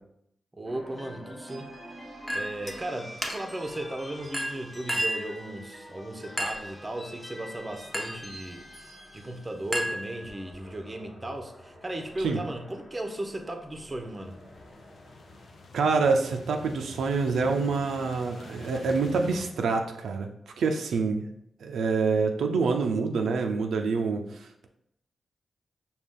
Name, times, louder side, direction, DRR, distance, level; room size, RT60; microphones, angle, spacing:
voice 1, 0.5-1.7 2.3-14.3, right 1 dB, 25° right, 0.6 m, -36 dB
sound 1, 0.7-16.9, equal, 25° left, 1.1 m, -47 dB
Chink clink, 2.3-2.8 3.2-3.7 4.3-5.3 6.4-6.8 7.9-8.3 9.7-10.5, equal, 5° left, 0.8 m, -32 dB
sound 2, 13.9-19.5, left 3 dB, 70° left, 0.5 m, -47 dB
voice 2, 15.7-20.3 20.6-21.3 21.6-24.7, right 4 dB, 85° right, 0.3 m, -26 dB
5.0 x 2.3 x 3.6 m
cardioid pair, 55°, 0 cm